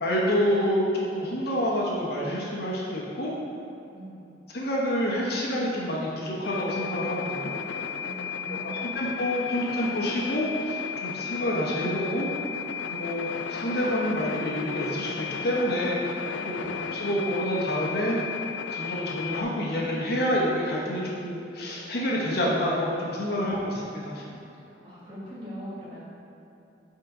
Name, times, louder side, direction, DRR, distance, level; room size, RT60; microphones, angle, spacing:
voice 1, 0.0-3.3 4.5-7.5 8.6-12.3 12.9-16.0 16.4-18.2 18.7-24.2, equal, 55° left, -4 dB, 0.9 m, -28 dB
voice 2, 3.9-4.2 8.0-9.0 16.5-16.9 24.1-24.4 24.7-26.1, equal, 25° right, -8 dB, 1.4 m, -42 dB
sound 1, 6.4-19.4, left 7 dB, 85° left, 0.4 m, -34 dB
5.6 x 3.8 x 4.9 m, 2.8 s
head